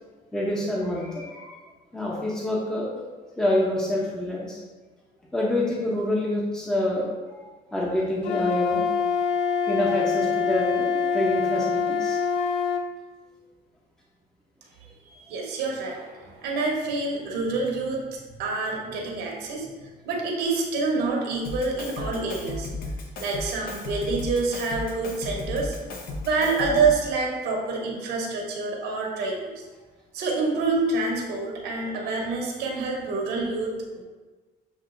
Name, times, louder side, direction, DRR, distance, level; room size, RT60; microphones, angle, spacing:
voice 1, 0.3-1.6 1.9-3.0 3.4-4.6 5.3-8.9 9.7-12.2, left 1 dB, 5° left, -4 dB, 0.7 m, -27 dB
Wind instrument woodwind instrument, 8.2-12.9, left 6 dB, 85° left, 0.4 m, -25 dB
voice 2, 15.1-18.1 18.4-19.7 20.0-22.7 23.2-25.8 26.2-29.5 30.1-34.0, right 3 dB, 80° right, 0 dB, 1.1 m, -27 dB
Drum kit, 21.4-27.1, left 2 dB, 60° left, 0.8 m, -35 dB
7.2 x 2.6 x 2.5 m, 1.3 s
cardioid pair, 110°, 17 cm